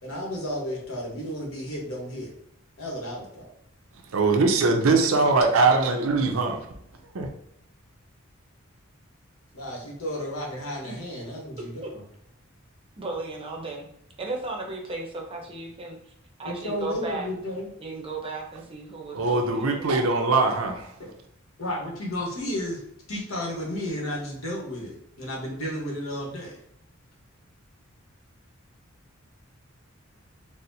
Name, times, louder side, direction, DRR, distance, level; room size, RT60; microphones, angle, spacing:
voice 1, 0.0-2.3 2.8-3.5 9.5-12.0 16.4-17.7 20.4-20.6 21.6-22.8 23.1-26.5, left 1 dB, 75° left, 1.1 m, -33 dB
voice 2, 4.0-6.7 7.0-7.3 19.1-20.8, right 3 dB, 75° right, 0.5 m, -22 dB
voice 3, 13.0-13.9 14.2-16.1 16.4-17.3 17.8-19.9, right 3 dB, 25° right, 0.6 m, -35 dB
4.1 x 2.0 x 2.6 m
head